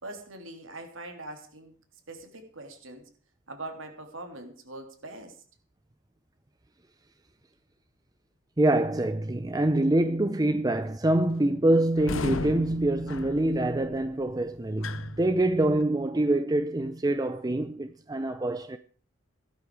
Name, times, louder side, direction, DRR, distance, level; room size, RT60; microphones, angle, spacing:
voice 1, 0.0-1.7 2.1-3.1 3.5-5.4, right 2 dB, 75° right, 3.2 m, -42 dB
voice 2, 8.6-18.8, right 1 dB, 20° right, 0.6 m, -25 dB
sound 1, 12.0-15.8, left 3 dB, 75° left, 0.7 m, -36 dB
16.0 x 12.5 x 4.9 m
head